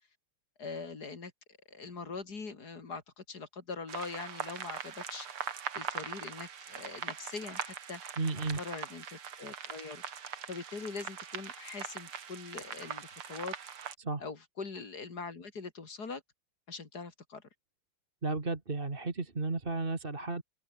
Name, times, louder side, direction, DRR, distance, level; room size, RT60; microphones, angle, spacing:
voice 1, 0.6-1.3 1.7-5.3 5.7-8.0 8.5-10.0 10.5-13.5 14.2-16.2 16.7-17.4, left 4 dB, 45° left, 3.3 m, -42 dB
sound 1, 3.9-14.0, right 7 dB, 75° right, 2.8 m, -41 dB
voice 2, 8.2-8.6 14.0-14.2 18.2-20.4, right 3 dB, 25° right, 2.2 m, -33 dB
open air
omnidirectional pair, 2.4 m